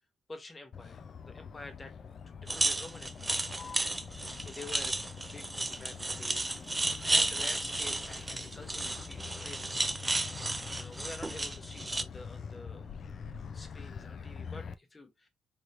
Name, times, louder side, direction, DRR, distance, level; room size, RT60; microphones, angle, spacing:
voice 1, 0.3-3.4 4.4-9.8 10.7-12.9 13.5-15.3, left 2 dB, 25° left, 0.9 m, -49 dB
Motor vehicle (road), 0.7-14.8, left 6 dB, 50° left, 0.4 m, -45 dB
sound 1, 2.5-12.0, right 2 dB, 20° right, 0.4 m, -33 dB
3.2 x 2.9 x 2.5 m
cardioid pair, 90°, 0 cm